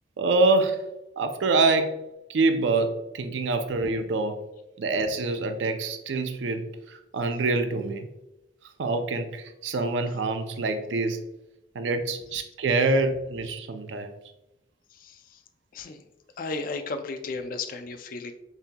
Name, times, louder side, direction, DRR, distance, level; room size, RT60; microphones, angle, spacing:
voice 1, 0.2-0.8 1.2-1.9 2.3-4.4 4.8-8.1 8.8-11.2 11.7-14.1, right 3 dB, 85° right, 8 dB, 0.4 m, -25 dB
voice 2, 15.0-15.4 15.7-16.0 16.4-18.3, left 3 dB, 50° left, 7 dB, 0.4 m, -34 dB
7.1 x 2.8 x 2.2 m, 0.92 s
head